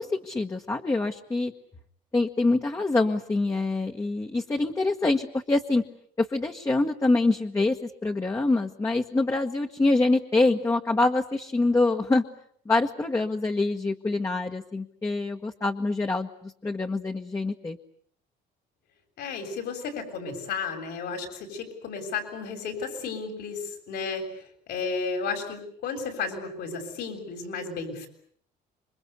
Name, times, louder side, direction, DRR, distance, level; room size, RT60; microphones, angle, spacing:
voice 1, 0.0-1.5 2.1-5.8 6.2-12.2 12.6-17.8, left 2 dB, 15° left, 3 dB, 1.5 m, -25 dB
voice 2, 19.2-24.2 24.7-28.1, left 5 dB, 75° left, 5 dB, 7.9 m, -33 dB
27.5 x 24.5 x 8.3 m, 0.65 s
cardioid pair, 110°, 17 cm